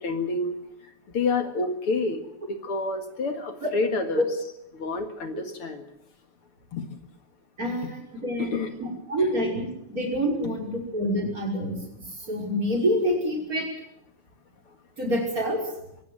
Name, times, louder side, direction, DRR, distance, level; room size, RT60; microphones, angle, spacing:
voice 1, 0.0-0.6 1.1-2.2 2.5-4.2 4.7-5.8 6.7-6.9 7.8-7.9 8.4-8.7 9.2-9.3, left 3 dB, 50° left, 6 dB, 2.5 m, -28 dB
voice 2, 7.6-8.0 8.2-8.5 9.1-11.8 12.3-13.7 15.0-15.6, equal, 25° right, 0 dB, 6.0 m, -26 dB
24.0 x 17.0 x 7.8 m, 0.82 s
omnidirectional pair, 3.4 m